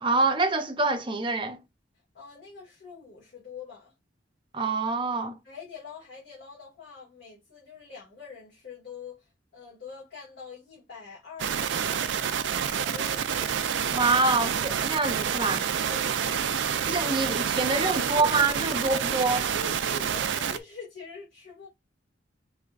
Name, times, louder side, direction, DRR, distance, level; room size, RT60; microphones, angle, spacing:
voice 1, 0.0-1.6 4.5-5.4 13.9-15.6 16.9-19.5, right 3 dB, 25° right, 0.6 m, -26 dB
voice 2, 2.1-3.9 5.4-13.3 15.9-16.5 19.5-21.7, left 5 dB, 60° left, 2.0 m, -44 dB
sound 1, 11.4-20.6, right 8 dB, 75° right, 0.5 m, -28 dB
4.6 x 2.9 x 2.4 m
head